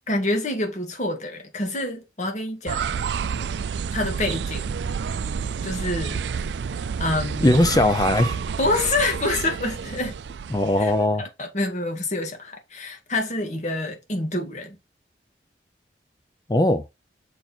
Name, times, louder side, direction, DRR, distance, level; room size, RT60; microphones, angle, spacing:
voice 1, 0.1-2.8 3.9-4.8 5.6-6.3 7.0-7.5 8.6-10.2 10.8-10.9 11.2-14.8, left 2 dB, 40° left, 2.0 m, -27 dB
sound 1, 2.7-11.1, right 6 dB, 80° right, 0.4 m, -29 dB
voice 2, 7.4-8.4 10.5-11.2 16.5-16.8, left 1 dB, 20° left, 0.5 m, -19 dB
7.0 x 4.5 x 4.1 m
head